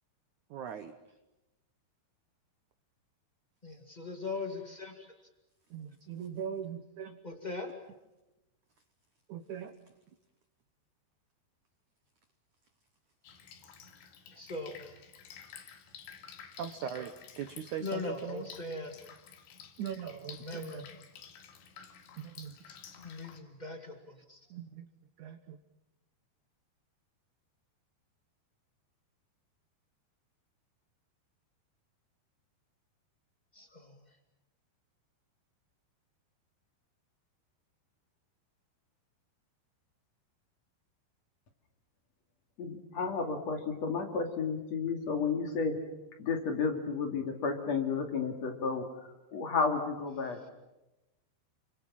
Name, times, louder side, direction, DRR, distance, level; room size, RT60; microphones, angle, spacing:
voice 1, 0.5-1.2 5.7-7.4 9.3-9.9 16.6-18.5 19.8-20.8 22.2-22.6 24.5-24.9 25.2-25.6, right 8 dB, 80° right, 9 dB, 1.7 m, -41 dB
voice 2, 3.6-5.1 7.2-7.7 14.3-14.9 17.8-18.9 20.4-21.0 22.7-24.4 33.5-34.0, left 3 dB, 60° left, 4 dB, 0.4 m, -40 dB
Drip, 13.2-23.4, left 7 dB, 75° left, 4.3 m, -52 dB
voice 3, 42.6-45.8 46.2-48.8 49.3-50.5, left 5 dB, 45° left, 4 dB, 3.2 m, -32 dB
29.5 x 24.5 x 7.5 m, 1.0 s
omnidirectional pair, 5.1 m